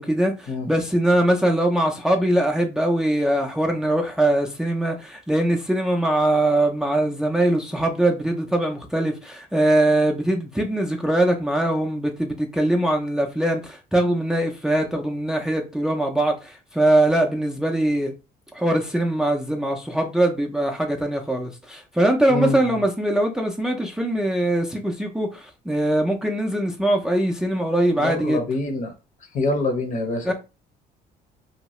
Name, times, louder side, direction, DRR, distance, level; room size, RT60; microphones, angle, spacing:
voice 1, 0.0-18.1 18.5-28.5 30.2-30.3, right 1 dB, 5° right, 0.4 m, -22 dB
voice 2, 22.3-22.8 28.0-28.9 29.3-30.3, left 2 dB, 50° left, 0.8 m, -25 dB
2.7 x 2.2 x 3.0 m
cardioid pair, 110°, 17 cm